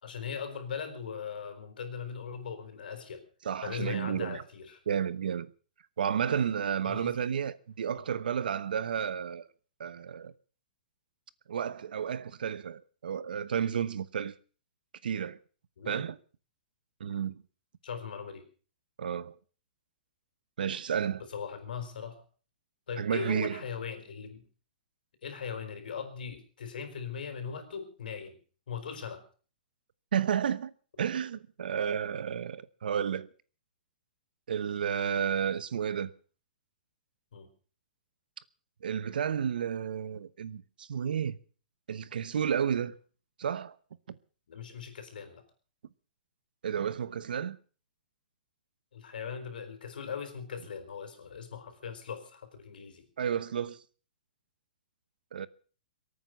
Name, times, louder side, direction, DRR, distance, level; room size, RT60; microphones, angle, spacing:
voice 1, 0.0-3.2 3.6-4.8 6.8-7.3 7.9-8.0 15.8-16.0 17.8-18.4 21.3-22.2 22.9-24.4 25.2-28.4 28.7-29.2 37.3-37.5 44.5-45.4 48.9-53.1, left 6 dB, 75° left, 4.7 m, -39 dB
voice 2, 3.4-4.4 4.9-5.5 6.0-9.5 9.8-10.3 11.5-14.3 15.0-15.4 15.9-16.2 17.0-17.4 19.0-19.3 20.6-21.2 23.0-23.6 30.1-30.7 31.0-33.3 34.5-36.1 38.8-41.4 41.9-43.0 43.4-43.8 44.1-44.2 46.6-47.6 53.2-53.8 55.3-55.5, right 8 dB, 75° right, 1.0 m, -31 dB
23.5 x 9.1 x 6.6 m
hypercardioid pair, 175°, 5 cm